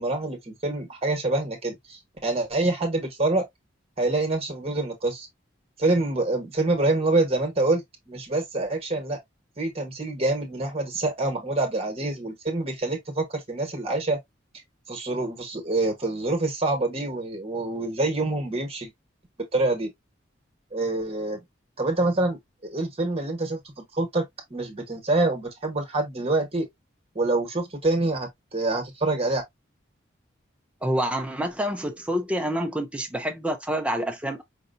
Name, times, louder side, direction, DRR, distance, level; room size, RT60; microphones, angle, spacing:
voice 1, 0.0-3.5 4.0-5.3 5.8-9.2 9.6-14.2 14.9-18.9 19.5-19.9 20.7-21.4 21.8-23.6 23.9-26.7 27.1-29.4, right 2 dB, 30° right, 1.4 m, -26 dB
voice 2, 30.8-34.4, equal, 5° right, 0.6 m, -27 dB
5.5 x 2.7 x 2.5 m
head